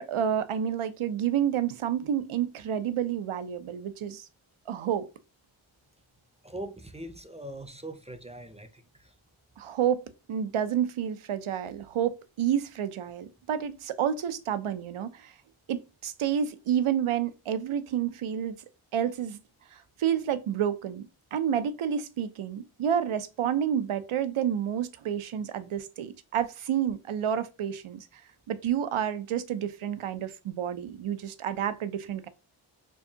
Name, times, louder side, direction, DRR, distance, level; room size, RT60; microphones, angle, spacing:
voice 1, 0.0-4.3 4.7-5.1 9.6-15.3 15.7-18.6 18.9-19.4 19.7-21.0 21.3-28.1 28.5-32.3, right 9 dB, 80° right, 0.6 m, -29 dB
voice 2, 6.4-9.1, right 1 dB, 15° right, 0.5 m, -41 dB
4.6 x 2.6 x 2.7 m
wide cardioid pair, 60°, 49 cm